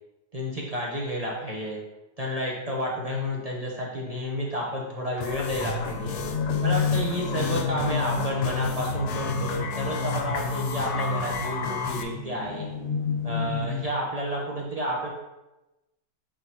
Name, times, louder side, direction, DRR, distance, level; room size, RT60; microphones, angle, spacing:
voice 1, 0.3-1.8 2.2-6.2 6.6-12.7 13.2-15.1, equal, 30° right, -3 dB, 0.7 m, -31 dB
sound 1, 5.2-12.0, left 5 dB, 90° left, 1.3 m, -33 dB
sound 2, 5.5-13.8, left 4 dB, 45° left, 1.0 m, -30 dB
8.8 x 3.7 x 2.9 m, 1.0 s
omnidirectional pair, 1.8 m